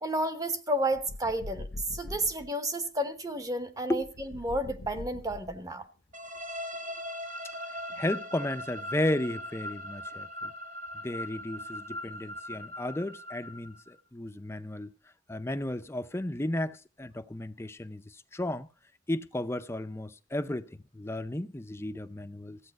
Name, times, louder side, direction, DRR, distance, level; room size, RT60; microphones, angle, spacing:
voice 1, 0.0-5.9, right 1 dB, 20° right, 1.0 m, -31 dB
sound 1, 0.9-2.5 4.0-5.8, left 2 dB, 80° left, 0.8 m, -42 dB
sound 2, 6.1-13.9, left 1 dB, 45° right, 1.1 m, -40 dB
voice 2, 8.0-10.5 11.0-14.9 15.3-18.7 19.1-22.6, left 1 dB, 15° left, 0.5 m, -34 dB
15.0 x 8.7 x 5.3 m
head